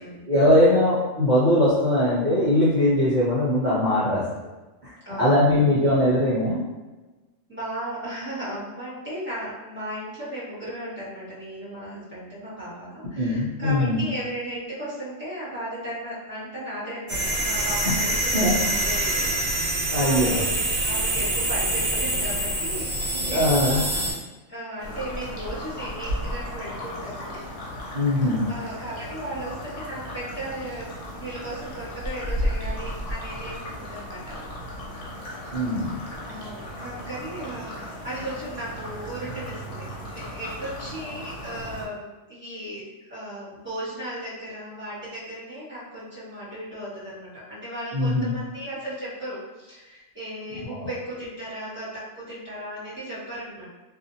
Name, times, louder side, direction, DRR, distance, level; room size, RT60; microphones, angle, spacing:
voice 1, 0.2-4.2 4.8-4.9 5.2-6.6 13.2-14.0 18.3-18.7 19.9-20.4 23.1-23.8 27.9-28.4 35.5-36.0 47.9-48.3 50.8-50.9, left 1 dB, 45° right, -9 dB, 0.7 m, -21 dB
voice 2, 5.0-5.7 7.5-20.6 20.8-24.1 24.5-27.4 28.5-34.5 36.2-53.7, right 1 dB, 10° right, -12 dB, 1.3 m, -36 dB
sound 1, 17.1-24.1, right 1 dB, 85° right, 1.2 m, -25 dB
sound 2, 24.8-41.9, equal, 80° left, 1.1 m, -35 dB
2.6 x 2.4 x 2.6 m, 1.1 s
omnidirectional pair, 1.3 m